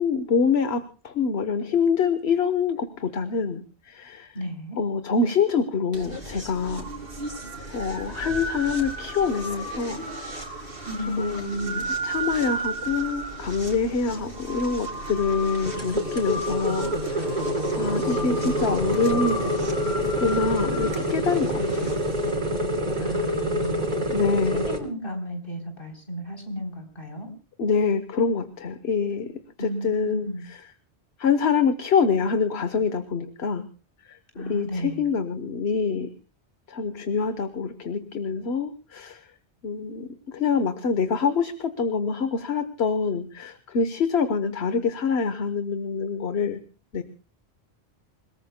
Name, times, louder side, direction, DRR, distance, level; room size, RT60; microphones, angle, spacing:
voice 1, 0.0-3.6 3.9-4.3 4.8-6.9 7.7-10.0 11.2-17.3 17.8-19.5 20.2-21.9 24.1-24.6 27.6-29.3 29.8-30.3 31.2-33.6 34.5-36.1 36.7-39.2 39.6-40.1 40.3-46.6 46.9-47.0, left 5 dB, 75° left, 10 dB, 1.4 m, -25 dB
voice 2, 4.3-4.8 10.8-11.8 23.0-23.9 24.6-27.3 29.6-30.4 34.3-35.0, equal, 55° left, 3 dB, 3.9 m, -33 dB
sound 1, 5.9-22.3, right 1 dB, 60° right, 3.1 m, -34 dB
sound 2, 15.7-24.8, equal, 45° right, 3.4 m, -26 dB
28.5 x 19.0 x 2.2 m, 0.35 s
omnidirectional pair, 1.1 m